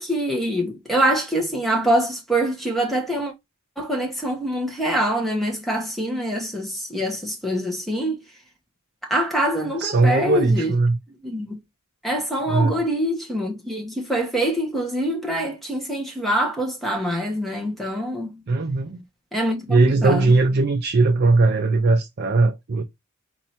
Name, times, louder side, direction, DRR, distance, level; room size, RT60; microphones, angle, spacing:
voice 1, 0.0-3.3 3.8-8.2 9.0-10.7 11.2-11.6 12.0-18.4 19.3-20.3, right 1 dB, ahead, 1.1 m, -24 dB
voice 2, 9.8-11.0 12.5-12.8 18.5-19.0 19.7-22.8, right 3 dB, 50° right, 0.5 m, -19 dB
4.4 x 2.7 x 4.2 m
head